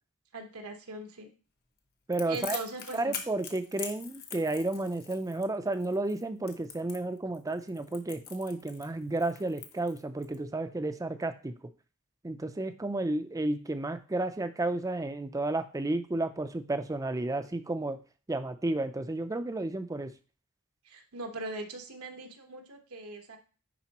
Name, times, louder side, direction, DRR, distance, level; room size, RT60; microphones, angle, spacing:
voice 1, 0.3-1.3 2.3-3.2 20.8-23.4, right 2 dB, 85° right, 4 dB, 1.2 m, -40 dB
Crackle, 2.1-10.4, left 7 dB, 45° left, 1.0 m, -43 dB
voice 2, 2.1-2.6 2.9-11.5 12.2-18.0 18.3-20.1, right 2 dB, 15° right, 9 dB, 0.4 m, -32 dB
10.0 x 3.9 x 2.9 m, 0.36 s
head